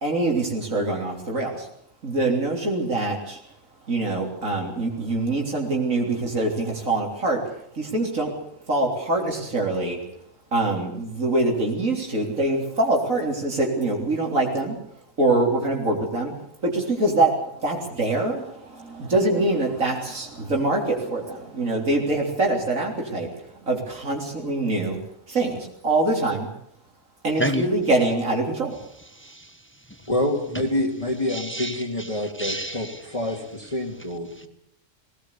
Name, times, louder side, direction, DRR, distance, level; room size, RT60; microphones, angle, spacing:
voice 1, 0.0-1.7 2.0-3.4 3.9-7.4 7.7-8.3 8.7-10.0 10.5-14.8 15.2-16.3 16.6-25.0 25.3-26.5 27.2-28.8, right 2 dB, 85° right, 4.0 m, -24 dB
voice 2, 27.4-27.7 29.0-30.1 30.5-30.7 31.2-34.5, equal, 10° left, 1.3 m, -33 dB
voice 3, 30.1-34.5, left 1 dB, 25° left, 2.4 m, -27 dB
19.5 x 18.5 x 8.4 m
omnidirectional pair, 1.3 m